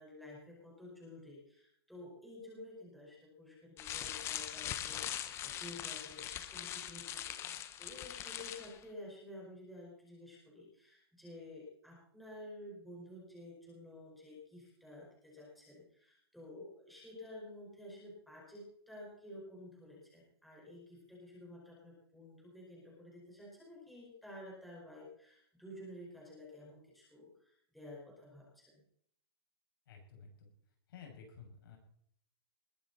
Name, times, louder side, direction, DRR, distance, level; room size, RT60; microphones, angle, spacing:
voice 1, 0.0-28.7, left 1 dB, ahead, -5 dB, 4.9 m, -52 dB
sound 1, 3.8-8.8, left 11 dB, 20° left, 0.9 m, -41 dB
voice 2, 29.9-30.5 30.9-31.8, left 6 dB, 60° left, 1 dB, 6.4 m, -53 dB
21.0 x 12.0 x 4.1 m, 0.67 s
hypercardioid pair, 155°, 13 cm